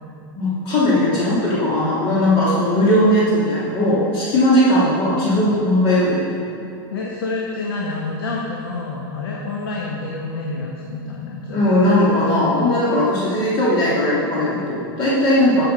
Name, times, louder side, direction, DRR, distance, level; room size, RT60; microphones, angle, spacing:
voice 1, 0.3-6.4 11.5-15.6, left 1 dB, 40° left, -8 dB, 2.8 m, -18 dB
voice 2, 6.9-11.6, left 3 dB, 85° left, -2 dB, 1.5 m, -28 dB
13.5 x 6.8 x 5.3 m, 2.7 s
supercardioid pair, 125°, 12 cm